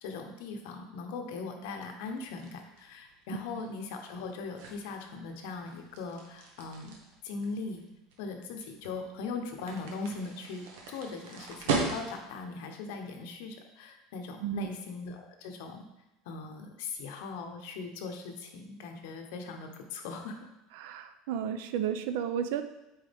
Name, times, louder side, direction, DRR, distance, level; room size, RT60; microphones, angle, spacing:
voice 1, 0.0-7.0 7.2-7.8 8.2-15.9 16.2-20.5, left 4 dB, 70° left, 4 dB, 0.9 m, -40 dB
sound 1, 2.0-12.4, right 4 dB, 85° right, 1.3 m, -39 dB
voice 2, 20.8-22.6, right 9 dB, 70° right, 9 dB, 0.5 m, -32 dB
8.3 x 4.0 x 3.5 m, 0.93 s
cardioid pair, 175°, 0 cm